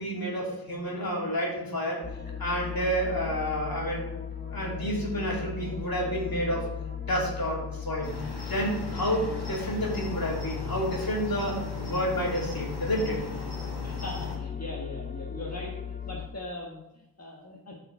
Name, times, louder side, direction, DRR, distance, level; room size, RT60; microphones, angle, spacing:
voice 1, 0.0-2.0 2.4-4.1 4.5-6.7 7.1-8.1 8.4-13.2, equal, 65° left, -3 dB, 3.1 m, -30 dB
sound 1, 2.0-16.3, left 7 dB, 25° left, 0.9 m, -37 dB
Cricket, 8.0-14.4, left 2 dB, 80° left, 2.2 m, -39 dB
voice 2, 13.8-17.8, left 1 dB, 40° left, -3 dB, 1.5 m, -40 dB
8.1 x 5.8 x 5.6 m, 0.90 s
wide cardioid pair, 60°, 38 cm